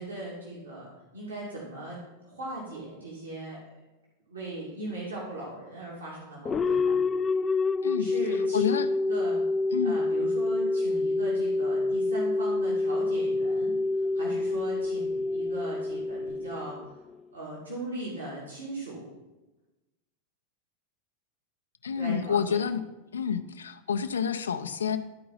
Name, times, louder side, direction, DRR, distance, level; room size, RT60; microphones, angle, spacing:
voice 1, 0.0-2.0 2.2-3.6 4.3-7.0 8.0-8.6 9.0-9.4 9.8-16.9 17.3-19.1 21.9-22.6, right 2 dB, 70° right, -6 dB, 2.5 m, -39 dB
sound 1, 6.5-17.1, left 3 dB, 20° left, 0.3 m, -27 dB
voice 2, 8.5-8.9 9.7-9.9 21.8-22.8 23.1-25.0, left 7 dB, 70° left, 9 dB, 0.5 m, -28 dB
12.5 x 4.7 x 5.5 m, 1.1 s
figure-of-eight pair, 90°, 0 cm